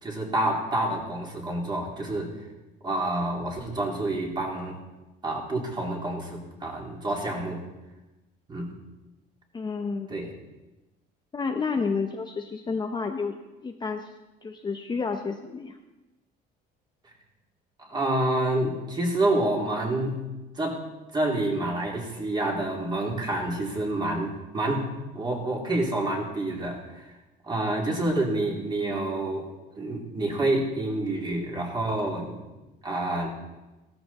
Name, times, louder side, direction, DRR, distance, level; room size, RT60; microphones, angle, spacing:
voice 1, 0.0-2.4 2.8-4.8 5.2-7.6 8.5-8.7 10.1-10.3 17.8-20.2 20.5-20.8 21.1-24.9 25.1-27.1 27.5-29.5 29.8-32.4 32.8-33.3, right 1 dB, 20° right, -1 dB, 3.4 m, -28 dB
voice 2, 9.5-10.1 11.3-13.3 13.6-14.1 14.4-15.8, left 4 dB, 20° left, 4 dB, 0.9 m, -30 dB
16.0 x 14.0 x 4.3 m, 1.1 s
cardioid pair, 130°, 20 cm